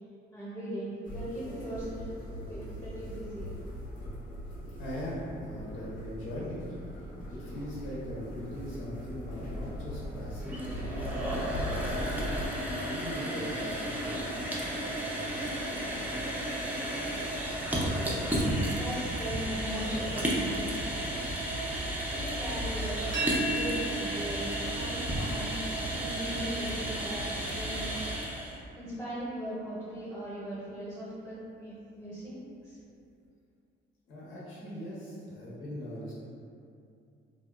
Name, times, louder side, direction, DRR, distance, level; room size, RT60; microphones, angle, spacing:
voice 1, 0.3-2.1 2.5-3.6 18.7-21.2 22.1-25.6 25.9-28.1 28.7-32.8, equal, 15° left, -11 dB, 0.8 m, -39 dB
sound 1, 1.1-12.5, equal, 40° left, 0.6 m, -39 dB
voice 2, 4.8-6.6 7.3-11.3 11.8-12.6 12.8-14.2 34.1-36.1, left 1 dB, 90° left, -8 dB, 0.8 m, -40 dB
sound 2, 10.3-28.6, right 1 dB, 10° right, 0.4 m, -33 dB
sound 3, 23.1-28.9, right 2 dB, 65° right, 0.6 m, -39 dB
2.7 x 2.1 x 2.3 m, 2.4 s
cardioid pair, 90°, 20 cm